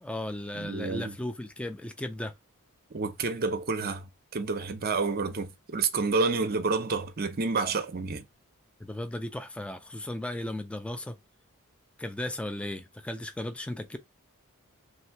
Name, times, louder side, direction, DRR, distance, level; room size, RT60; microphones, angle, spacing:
voice 1, 0.0-2.3 8.8-11.2 12.0-14.0, left 1 dB, 5° left, 0.3 m, -36 dB
voice 2, 0.6-1.1 2.9-8.2, right 4 dB, 45° right, 0.6 m, -29 dB
3.3 x 2.7 x 4.5 m
head